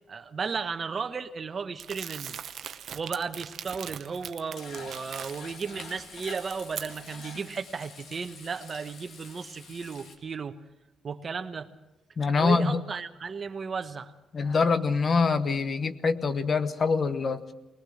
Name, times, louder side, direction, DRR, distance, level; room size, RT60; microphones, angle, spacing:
voice 1, 0.1-2.4 2.9-10.6 11.0-11.7 12.4-14.1, right 5 dB, 40° right, 9 dB, 1.1 m, -34 dB
Crumpling crinkling, 1.8-5.6 6.0-7.3, right 8 dB, 65° right, 0.7 m, -41 dB
Frying (food), 4.5-10.2, left 3 dB, 65° left, 2.8 m, -46 dB
voice 2, 12.2-12.8 14.3-17.5, left 4 dB, 40° left, 11 dB, 1.1 m, -25 dB
21.0 x 20.0 x 6.5 m, 1.0 s
cardioid pair, 90°, 0 cm